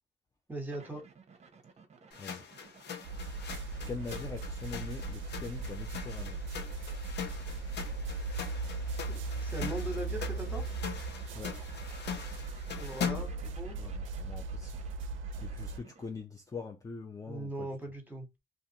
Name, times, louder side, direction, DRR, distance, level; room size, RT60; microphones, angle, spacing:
voice 1, 0.5-1.0 9.1-10.6 12.7-13.8 17.3-18.3, right 1 dB, 10° right, 1.2 m, -40 dB
sound 1, 0.7-16.1, right 5 dB, 35° right, 0.7 m, -56 dB
sound 2, 2.1-13.5, left 7 dB, 60° left, 0.7 m, -42 dB
sound 3, 3.0-15.8, right 3 dB, 75° right, 0.5 m, -38 dB
voice 2, 3.9-6.4 11.3-11.6 13.8-14.8 15.4-17.7, left 4 dB, 15° left, 0.4 m, -43 dB
2.4 x 2.4 x 2.8 m
cardioid pair, 90°, 20 cm